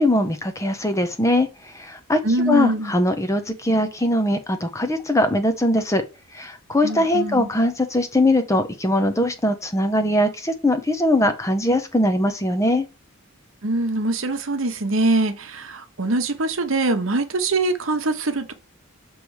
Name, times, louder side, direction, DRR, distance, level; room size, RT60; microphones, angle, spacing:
voice 1, 0.0-1.5 1.7-2.2 2.5-6.0 6.3-12.9, left 1 dB, 15° left, 0.6 m, -21 dB
voice 2, 2.2-2.9 6.8-7.5 13.6-18.5, right 2 dB, 60° right, 1.0 m, -23 dB
6.7 x 3.1 x 4.8 m
head